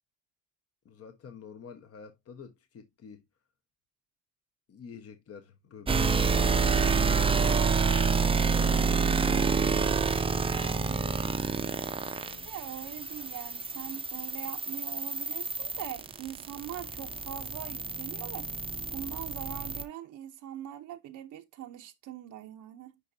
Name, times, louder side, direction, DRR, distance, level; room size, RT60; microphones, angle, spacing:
voice 1, 0.8-3.3 4.7-10.1 10.6-11.8 12.2-12.5, left 7 dB, 50° left, 1.0 m, -48 dB
sound 1, 5.9-19.8, right 5 dB, 20° right, 0.5 m, -28 dB
voice 2, 10.5-11.0 12.2-18.5 18.9-23.0, right 11 dB, 80° right, 0.8 m, -42 dB
9.8 x 4.1 x 2.6 m
cardioid pair, 90°, 30 cm